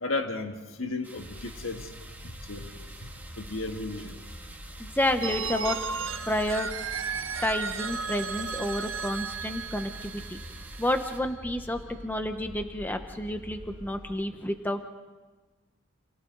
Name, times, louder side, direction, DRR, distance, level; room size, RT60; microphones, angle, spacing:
voice 1, 0.0-1.9 2.2-2.9 3.4-4.1, left 3 dB, 70° left, 5 dB, 1.6 m, -34 dB
sound 1, 1.0-11.2, right 2 dB, 10° right, 2.1 m, -49 dB
sound 2, 1.1-14.1, equal, 45° left, 5.7 m, -45 dB
voice 2, 4.8-5.8 6.3-6.7 7.4-10.4 10.8-14.8, left 1 dB, 10° left, 6 dB, 0.9 m, -30 dB
Telephone, 5.2-11.0, right 5 dB, 70° right, 1.3 m, -35 dB
30.0 x 28.0 x 3.9 m, 1.2 s
head